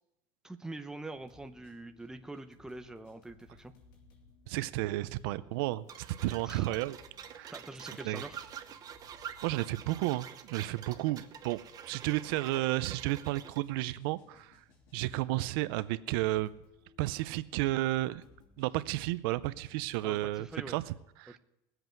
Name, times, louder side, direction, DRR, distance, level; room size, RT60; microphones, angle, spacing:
voice 1, 0.4-3.7 6.4-6.8 7.5-8.5 20.0-20.8 21.3-21.4, right 2 dB, 5° right, 7 dB, 0.7 m, -44 dB
sound 1, 1.1-20.6, left 4 dB, 85° left, 3.0 m, -63 dB
voice 2, 4.5-5.9 6.2-7.0 7.3-7.5 8.0-8.2 9.4-11.6 11.9-14.6 14.9-16.6 17.0-18.2 18.6-21.4, right 17 dB, 90° right, 15 dB, 0.5 m, -32 dB
sound 2, 5.9-13.6, right 9 dB, 35° right, 0.9 m, -47 dB
20.5 x 7.9 x 4.6 m, 0.88 s
cardioid pair, 150°, 12 cm